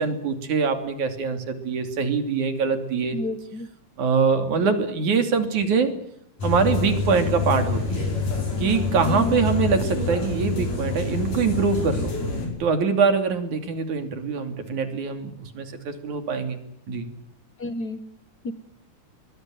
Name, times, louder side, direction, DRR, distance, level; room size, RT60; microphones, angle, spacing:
voice 1, 0.0-3.2 4.0-5.9 6.4-8.1 8.6-12.1 12.6-17.1, right 5 dB, 70° right, 8 dB, 4.3 m, -24 dB
voice 2, 3.1-3.7 9.1-9.4 17.6-18.0 18.4-18.5, left 1 dB, 55° left, 12 dB, 1.1 m, -30 dB
sound 1, 6.4-12.5, left 4 dB, 80° left, 7.4 m, -27 dB
23.5 x 21.0 x 9.4 m, 0.72 s
omnidirectional pair, 3.6 m